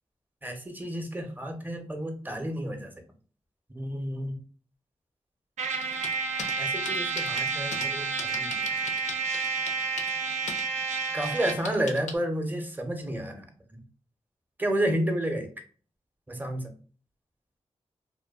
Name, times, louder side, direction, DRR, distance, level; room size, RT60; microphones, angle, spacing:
voice 1, 0.4-2.9 3.7-4.4 6.4-8.6 11.1-13.5 13.7-13.8 14.6-15.5 16.3-16.6, right 1 dB, 15° right, 5 dB, 0.6 m, -31 dB
Trumpet, 5.6-11.7, right 4 dB, 75° right, 0.4 m, -30 dB
sound 1, 5.8-6.5 6.9-7.9 8.2-10.2 10.5-10.6 11.0-12.1, left 5 dB, 80° left, 0.4 m, -38 dB
2.4 x 2.2 x 2.3 m, 0.40 s
cardioid pair, 45°, 12 cm